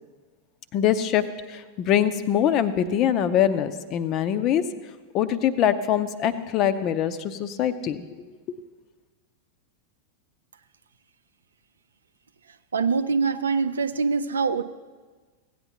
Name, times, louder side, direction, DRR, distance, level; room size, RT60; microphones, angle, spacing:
voice 1, 0.7-4.6 5.1-8.0, left 10 dB, 35° left, 12 dB, 0.6 m, -23 dB
voice 2, 12.7-14.6, right 5 dB, 70° right, 11 dB, 0.4 m, -24 dB
16.5 x 8.9 x 2.8 m, 1.4 s
figure-of-eight pair, 90°, 0 cm